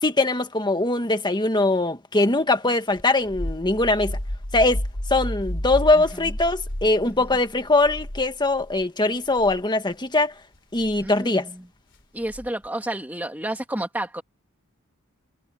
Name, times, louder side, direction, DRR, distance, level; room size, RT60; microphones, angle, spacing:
voice 1, 0.0-4.2 4.5-4.8 5.1-10.3 10.7-11.5, left 2 dB, 20° left, 1.7 m, -21 dB
sound 1, 3.0-8.8 9.3-9.6 10.8-11.1 12.3-12.7, equal, 55° left, 3.5 m, -32 dB
voice 2, 6.0-6.3 7.1-7.2 11.0-11.6 12.1-14.2, right 1 dB, 10° right, 2.4 m, -31 dB
head